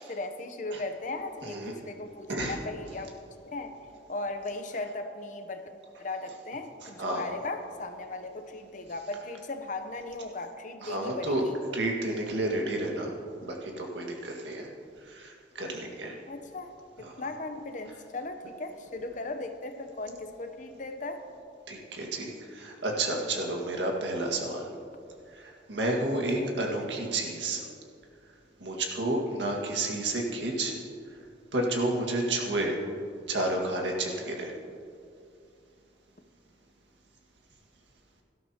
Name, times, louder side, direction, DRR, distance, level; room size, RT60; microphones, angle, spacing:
voice 1, 0.0-3.1 3.4-3.7 4.1-5.6 6.0-11.6 16.3-16.7 17.0-21.2 26.3-26.5, left 2 dB, 45° left, 7 dB, 0.8 m, -37 dB
voice 2, 1.4-1.7 2.3-2.6 6.8-7.3 10.8-11.4 11.7-13.1 13.4-14.7 15.0-16.1 17.0-17.2 21.7-24.7 25.3-27.6 28.6-30.7 31.5-32.8 33.3-34.5, right 2 dB, 85° right, 0 dB, 1.9 m, -31 dB
18.0 x 12.5 x 2.9 m, 2.5 s
head